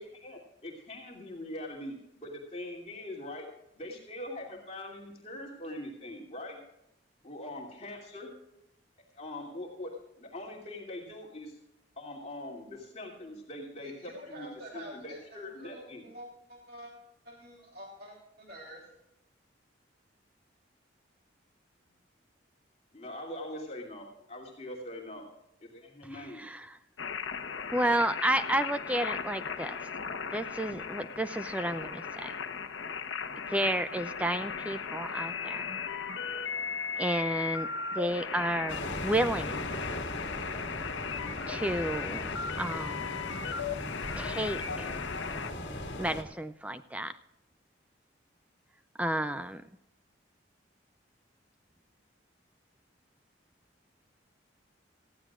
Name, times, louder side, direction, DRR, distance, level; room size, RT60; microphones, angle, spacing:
voice 1, 0.0-3.5 3.8-6.6 7.2-8.3 9.1-9.9 10.2-11.6 12.0-14.5 14.7-16.1 22.9-25.2 25.6-26.5, left 1 dB, 35° left, -1 dB, 2.7 m, -42 dB
voice 2, 13.8-16.9 17.2-18.8, right 1 dB, 50° right, -1 dB, 3.1 m, -47 dB
voice 3, 26.1-26.8 27.7-29.8 30.3-32.3 33.5-35.8 37.0-39.6 41.5-42.3 42.6-43.2 44.2-44.9 46.0-47.1 49.0-49.6, right 1 dB, 5° right, 11 dB, 0.4 m, -31 dB
sound 1, 27.0-45.5, left 6 dB, 80° left, 1.1 m, -37 dB
sound 2, 38.7-46.2, left 1 dB, 60° left, 2.0 m, -39 dB
19.0 x 14.5 x 2.4 m, 0.88 s
head